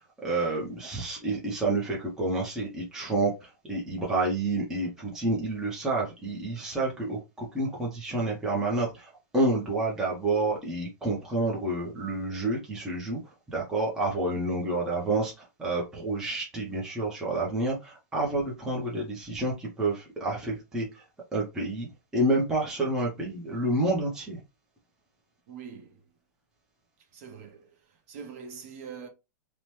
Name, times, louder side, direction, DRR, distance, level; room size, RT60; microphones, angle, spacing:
voice 1, 0.2-13.2 13.5-21.0 21.3-21.9 22.1-24.4, right 2 dB, 5° right, 0.6 m, -29 dB
voice 2, 25.5-26.0 27.1-27.7 28.1-29.1, right 6 dB, 45° right, 0.8 m, -43 dB
2.9 x 2.1 x 3.1 m
supercardioid pair, 165°, 10 cm